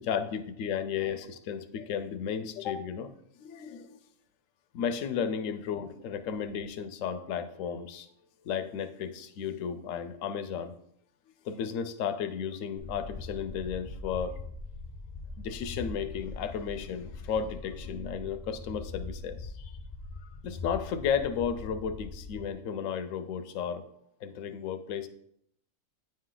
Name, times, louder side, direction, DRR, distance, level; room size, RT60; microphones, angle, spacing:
voice 1, 0.0-3.1 3.4-4.0 4.7-8.1 8.4-10.7 11.4-14.4 15.4-19.7 20.2-23.9 24.2-25.1, left 7 dB, 75° left, 10 dB, 0.9 m, -34 dB
sound 1, 12.8-22.5, left 3 dB, 45° left, 0.5 m, -42 dB
8.9 x 3.2 x 3.8 m, 0.71 s
omnidirectional pair, 1.4 m